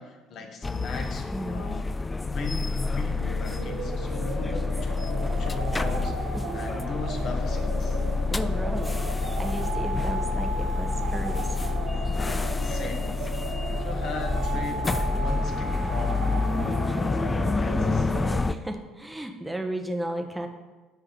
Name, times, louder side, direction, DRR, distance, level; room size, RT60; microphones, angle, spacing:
voice 1, 0.0-1.9 2.2-6.1 6.5-8.0 12.6-16.3 17.0-18.1, left 3 dB, 45° left, 3 dB, 1.1 m, -38 dB
sound 1, 0.6-18.5, left 3 dB, 20° left, 0.3 m, -28 dB
voice 2, 1.3-1.7 6.3-6.6 8.3-11.6 18.5-20.5, right 1 dB, 10° right, 4 dB, 0.9 m, -34 dB
sound 2, 3.1-18.4, right 4 dB, 70° right, 0.7 m, -36 dB
9.3 x 3.7 x 5.8 m, 1.2 s
figure-of-eight pair, 55°, 0 cm